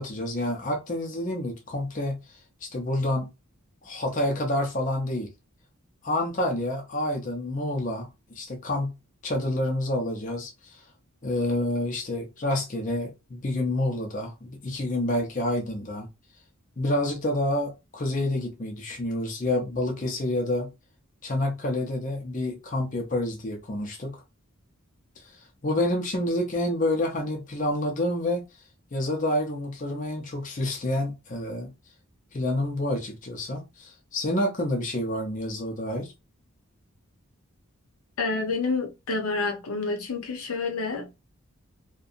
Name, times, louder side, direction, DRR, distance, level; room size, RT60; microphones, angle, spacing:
voice 1, 0.0-2.2 2.6-3.3 3.8-5.3 6.0-8.1 8.3-8.9 9.2-10.7 11.2-16.1 16.8-20.7 21.2-24.2 25.4-28.4 28.9-31.7 32.3-36.1, left 1 dB, 35° left, 0.6 m, -28 dB
voice 2, 38.2-41.3, left 3 dB, 80° left, 0.7 m, -29 dB
2.7 x 2.2 x 2.4 m
head